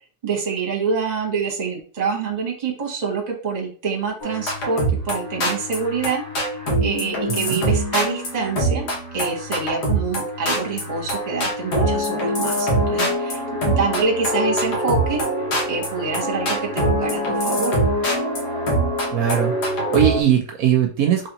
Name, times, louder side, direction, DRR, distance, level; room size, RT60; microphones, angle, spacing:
voice 1, 0.2-15.2 15.7-17.8, right 5 dB, 30° right, 1 dB, 1.0 m, -26 dB
sound 1, 4.2-20.2, right 1 dB, 85° left, 1.8 m, -24 dB
voice 2, 19.1-21.3, right 9 dB, 70° right, 3 dB, 1.0 m, -20 dB
4.0 x 3.1 x 2.9 m, 0.41 s
omnidirectional pair, 1.7 m